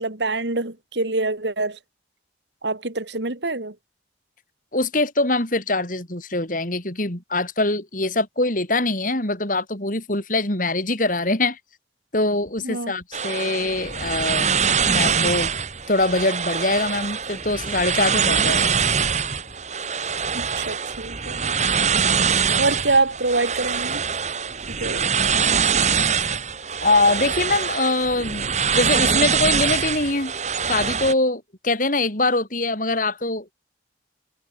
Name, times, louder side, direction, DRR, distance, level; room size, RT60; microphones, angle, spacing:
voice 1, 0.0-1.8 2.6-3.7 12.6-12.9 20.3-21.5 21.8-22.0 22.5-24.1 24.7-25.3, right 3 dB, 75° right, 2.6 m, -25 dB
voice 2, 4.7-11.6 12.1-14.5 14.8-15.5 15.9-18.7 26.8-30.3 30.6-33.5, left 2 dB, 45° left, 4.3 m, -23 dB
sound 1, 13.1-31.1, right 6 dB, 40° right, 2.7 m, -23 dB
head